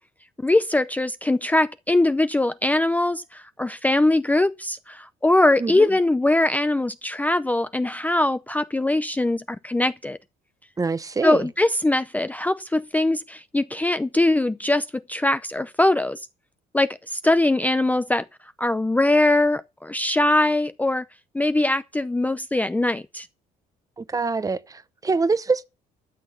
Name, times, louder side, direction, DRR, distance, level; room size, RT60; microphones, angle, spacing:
voice 1, 0.4-10.2 11.2-16.2 16.7-18.2 18.6-21.0 21.3-23.3, left 2 dB, 10° left, 0.6 m, -22 dB
voice 2, 5.6-5.9 10.8-11.5 24.0-25.6, right 4 dB, 20° right, 0.8 m, -25 dB
12.5 x 6.2 x 7.1 m
cardioid pair, 110°, 17 cm